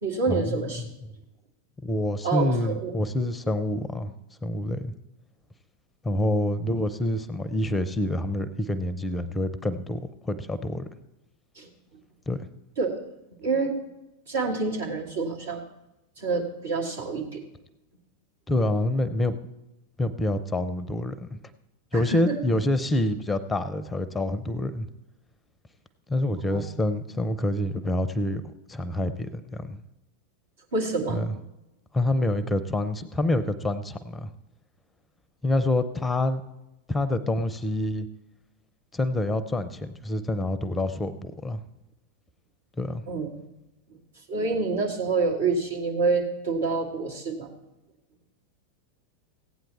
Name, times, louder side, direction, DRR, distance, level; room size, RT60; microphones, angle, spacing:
voice 1, 0.0-0.8 2.2-2.9 11.6-11.7 12.8-13.0 13.4-13.8 14.3-15.6 16.2-17.4 21.9-22.4 26.5-26.7 30.7-31.2 43.1-43.3 44.3-47.5, right 4 dB, 65° right, -1 dB, 2.5 m, -27 dB
voice 2, 1.8-4.1 4.4-4.9 6.0-10.9 12.3-12.4 18.5-19.4 20.0-21.4 21.9-24.9 26.1-28.4 28.7-29.8 31.1-31.3 31.9-34.3 35.4-36.4 36.9-38.1 38.9-41.6 42.8-43.0, left 1 dB, 10° left, 14 dB, 0.6 m, -27 dB
16.0 x 9.1 x 4.2 m, 0.95 s
figure-of-eight pair, 90°, 0 cm